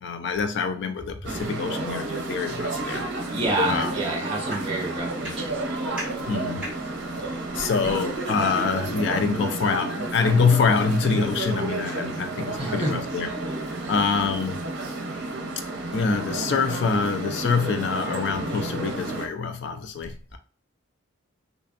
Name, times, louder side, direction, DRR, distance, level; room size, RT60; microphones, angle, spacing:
voice 1, 0.0-3.1 3.7-3.9 6.3-6.7 7.5-13.3 13.9-14.6 15.9-20.4, left 5 dB, 55° left, 0.3 m, -25 dB
sound 1, 1.2-19.3, right 2 dB, 55° right, 0.7 m, -31 dB
voice 2, 3.3-5.5 12.6-12.9 13.8-13.9, right 2 dB, 25° right, 0.9 m, -28 dB
sound 2, 5.1-11.2, right 1 dB, 5° right, 1.3 m, -44 dB
3.8 x 3.3 x 2.4 m
head